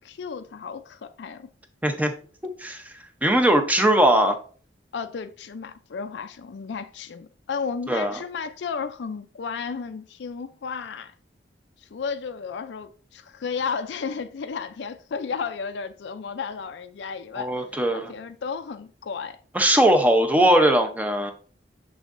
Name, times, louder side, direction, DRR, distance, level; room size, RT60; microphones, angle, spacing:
voice 1, 0.0-1.5 4.9-11.1 11.8-17.6 17.9-19.4, left 5 dB, 75° left, 0.4 m, -33 dB
voice 2, 1.8-2.1 2.6-2.8 3.2-4.4 7.9-8.2 17.4-18.1 19.5-21.3, right 1 dB, 10° right, 0.6 m, -20 dB
6.3 x 6.2 x 2.5 m
head